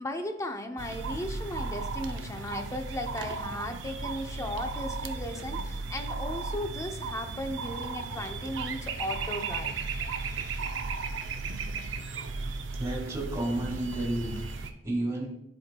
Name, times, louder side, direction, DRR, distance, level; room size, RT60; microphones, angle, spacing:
voice 1, 0.0-9.8, left 1 dB, 15° left, 5 dB, 0.5 m, -36 dB
sound 1, 0.8-14.7, right 4 dB, 75° right, 0.5 m, -35 dB
voice 2, 12.8-15.3, right 1 dB, 15° right, -2 dB, 1.7 m, -32 dB
10.5 x 4.5 x 2.2 m, 0.82 s
head